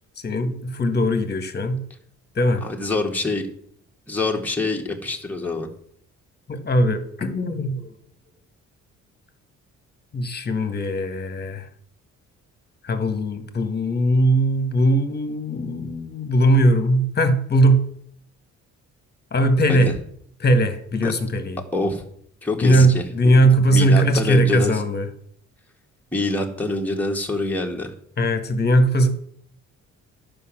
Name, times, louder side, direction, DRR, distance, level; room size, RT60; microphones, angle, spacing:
voice 1, 0.2-1.8 2.3-2.6 6.5-7.9 10.1-11.7 12.8-17.9 19.3-19.9 20.4-21.6 22.6-25.1 28.2-29.1, right 1 dB, 35° left, 8 dB, 1.6 m, -19 dB
voice 2, 2.6-3.4 4.1-5.7 19.7-19.9 21.0-21.1 21.7-22.0 22.4-23.0 23.7-24.7 26.1-27.9, left 2 dB, 5° left, 0 dB, 1.9 m, -25 dB
11.0 x 5.4 x 7.6 m, 0.64 s
cardioid pair, 90°, 30 cm